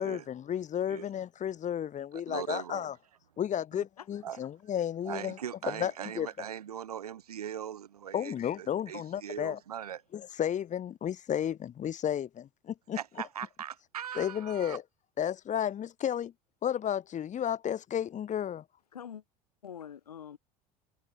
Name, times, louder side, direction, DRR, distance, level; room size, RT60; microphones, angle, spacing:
voice 1, 0.0-2.9 3.4-5.4 5.7-6.3 8.1-9.6 10.1-13.0 14.2-14.8 15.2-16.3 16.6-18.6, left 9 dB, 40° left, 4.1 m, -33 dB
voice 2, 2.3-2.9 4.2-4.4 5.0-10.0 12.9-14.8, right 9 dB, 85° right, 1.5 m, -40 dB
voice 3, 3.7-4.2 18.9-19.2 19.6-20.4, left 8 dB, 85° left, 7.4 m, -45 dB
hypercardioid pair, 70°, 19 cm